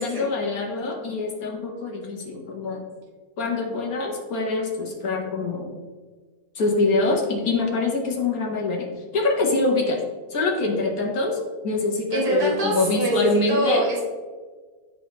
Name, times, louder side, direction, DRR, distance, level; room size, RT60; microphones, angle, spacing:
voice 1, 0.0-2.8 3.4-5.7 6.5-10.0 10.3-13.9, left 3 dB, 60° left, 0 dB, 1.6 m, -24 dB
voice 2, 12.1-13.1 13.5-14.0, right 1 dB, 70° right, -5 dB, 2.6 m, -24 dB
11.0 x 4.0 x 3.0 m, 1.4 s
omnidirectional pair, 1.7 m